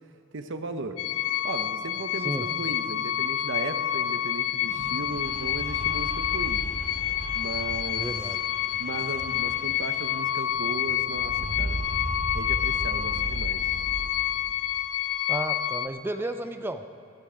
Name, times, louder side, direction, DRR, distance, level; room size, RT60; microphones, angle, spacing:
voice 1, 0.3-1.0 1.4-6.6 7.3-8.1 8.8-11.8 12.3-13.7, right 3 dB, 65° right, 8 dB, 0.9 m, -36 dB
sound 1, 1.0-15.9, left 12 dB, 85° left, 0.5 m, -28 dB
voice 2, 2.2-2.5 8.0-8.4 15.3-16.8, right 1 dB, 10° right, 8 dB, 0.4 m, -33 dB
sound 2, 4.5-9.8 10.1-10.2 10.4-14.8, right 1 dB, 80° right, 1.2 m, -36 dB
sound 3, 4.6-10.2, left 1 dB, 40° left, 3.6 m, -53 dB
14.0 x 12.0 x 5.1 m, 2.3 s
head